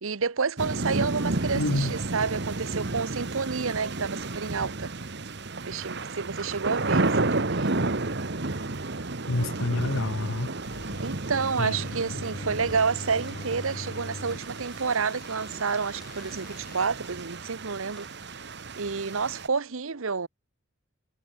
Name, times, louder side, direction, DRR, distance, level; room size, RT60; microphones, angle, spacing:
voice 1, 0.0-4.9 5.7-7.8 11.0-18.1 18.8-20.3, right 5 dB, 70° right, 0.9 m, -29 dB
sound 1, 0.6-19.5, right 2 dB, 50° right, 1.3 m, -32 dB
voice 2, 1.5-1.9 9.3-10.5 11.6-11.8, left 2 dB, 65° left, 1.3 m, -27 dB
sound 2, 10.6-16.9, left 2 dB, 45° left, 1.1 m, -42 dB
sound 3, 13.1-13.5 14.0-18.2, equal, ahead, 6.7 m, -57 dB
head